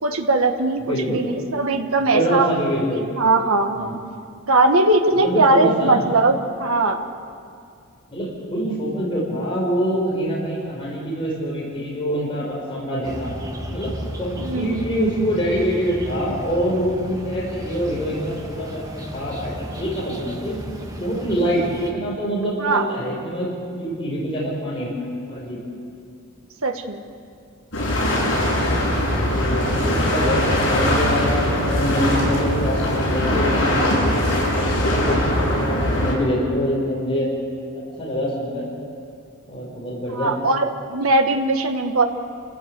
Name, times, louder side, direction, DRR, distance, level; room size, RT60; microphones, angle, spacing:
voice 1, 0.0-2.5 3.2-3.9 4.5-7.0 14.4-14.8 22.6-22.9 26.6-27.0 40.1-42.0, right 2 dB, 70° right, 6 dB, 1.4 m, -19 dB
voice 2, 0.8-1.3 2.0-3.1 3.8-4.0 5.1-6.0 8.1-13.3 13.7-20.6 21.0-23.5 23.7-25.6 29.1-37.3 38.0-38.7 39.4-40.3, equal, 25° left, -5 dB, 5.3 m, -25 dB
sound 1, 13.0-21.9, equal, 15° right, 1.9 m, -34 dB
sound 2, 27.7-36.1, left 1 dB, 60° left, 7.7 m, -21 dB
27.5 x 15.0 x 8.1 m, 2.4 s
head